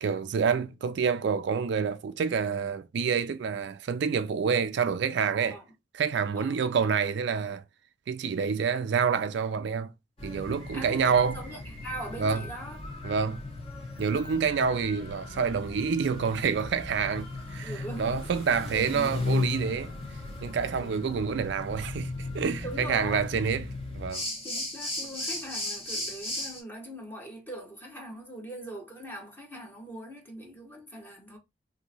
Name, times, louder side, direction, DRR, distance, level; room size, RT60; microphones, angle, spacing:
voice 1, 0.0-5.6 5.9-7.6 8.1-9.9 10.2-11.4 12.2-12.4 13.0-13.4 14.0-17.7 18.0-19.9 20.4-23.7 23.9-24.3, right 6 dB, 65° right, 0.4 m, -27 dB
sound 1, 10.2-26.6, left 2 dB, 30° left, 1.4 m, -36 dB
voice 2, 10.7-12.8 17.6-18.1 18.7-18.9 22.6-23.3 24.4-31.4, right 1 dB, 10° left, 1.2 m, -41 dB
2.9 x 2.6 x 4.0 m
head